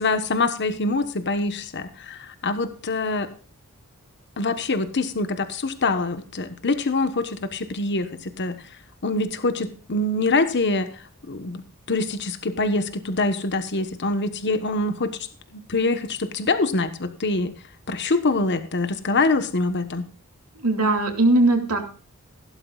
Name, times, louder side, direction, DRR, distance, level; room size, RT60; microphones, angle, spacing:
voice 1, 0.0-3.3 4.4-8.6 9.0-10.9 11.3-15.3 15.5-17.5 17.9-20.1, left 3 dB, 50° left, 10 dB, 1.2 m, -25 dB
voice 2, 20.5-21.8, right 2 dB, 90° right, 4 dB, 2.6 m, -19 dB
16.5 x 12.0 x 2.4 m, 0.39 s
head